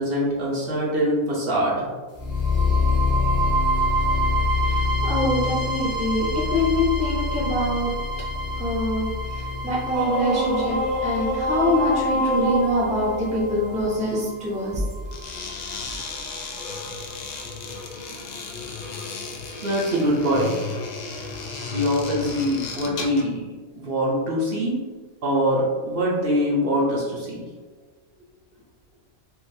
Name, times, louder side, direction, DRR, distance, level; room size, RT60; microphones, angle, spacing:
voice 1, 0.0-1.9 19.6-20.6 21.7-23.4 23.7-24.8 25.2-27.4, equal, 55° right, -5 dB, 0.8 m, -23 dB
sound 1, 2.2-16.2, left 2 dB, 30° left, 0.9 m, -26 dB
voice 2, 4.6-7.9 8.6-14.8, left 1 dB, 10° right, -5 dB, 0.5 m, -25 dB
sound 2, 9.9-14.2, equal, 80° right, 1.0 m, -26 dB
sound 3, 15.1-23.3, left 4 dB, 80° left, 0.4 m, -34 dB
3.8 x 2.4 x 2.6 m, 1.4 s
omnidirectional pair, 1.3 m